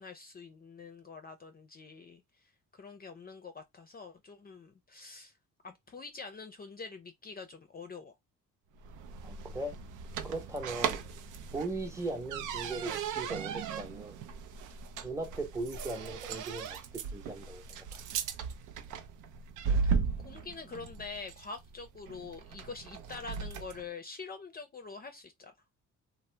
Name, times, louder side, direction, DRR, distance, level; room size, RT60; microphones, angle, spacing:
voice 1, 0.0-5.3 5.6-8.2 19.8-25.5, left 4 dB, 30° left, 0.5 m, -46 dB
sound 1, 8.8-23.9, right 6 dB, 85° right, 0.5 m, -37 dB
voice 2, 9.2-9.7 10.2-11.0 11.5-14.2 15.0-17.6 17.9-18.0, right 2 dB, 10° right, 0.8 m, -38 dB
2.7 x 2.0 x 3.2 m
cardioid pair, 90°, 30 cm